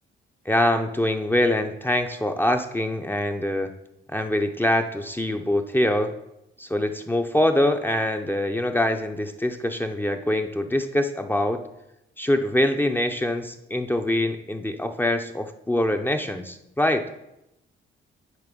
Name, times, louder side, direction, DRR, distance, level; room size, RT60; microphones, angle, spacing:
voice 1, 0.5-3.7 4.1-6.1 6.6-11.6 12.2-17.1, left 1 dB, 10° left, 5 dB, 0.6 m, -24 dB
9.1 x 3.4 x 5.3 m, 0.86 s
cardioid pair, 90°, 20 cm